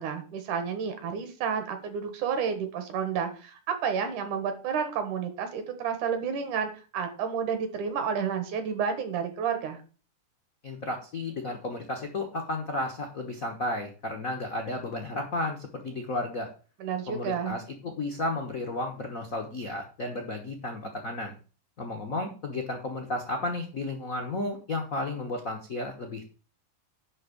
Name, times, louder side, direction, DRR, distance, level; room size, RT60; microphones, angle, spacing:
voice 1, 0.0-9.8 16.8-17.6, right 7 dB, 75° right, 7 dB, 3.0 m, -30 dB
voice 2, 10.6-16.5 17.1-21.3 21.8-26.2, left 2 dB, 55° left, 2 dB, 0.9 m, -33 dB
10.5 x 3.6 x 7.0 m, 0.37 s
omnidirectional pair, 3.5 m